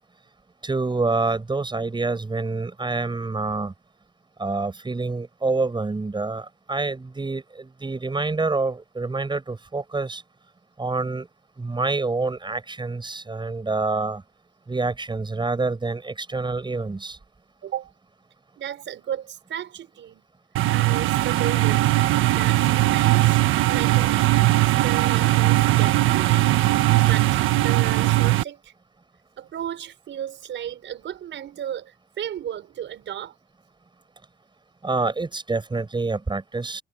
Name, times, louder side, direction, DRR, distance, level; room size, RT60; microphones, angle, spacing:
voice 1, 0.6-3.7 4.4-10.2 10.8-11.3 11.6-14.2 14.7-17.2 34.8-36.8, right 3 dB, 25° right, 7.1 m, -27 dB
voice 2, 17.6-17.9 18.6-20.3 20.7-21.9 22.4-24.3 24.6-28.7 29.4-33.3, right 10 dB, 70° right, 6.2 m, -34 dB
sound 1, 20.6-28.4, right 17 dB, 85° right, 1.4 m, -19 dB
cardioid pair, 90°, 20 cm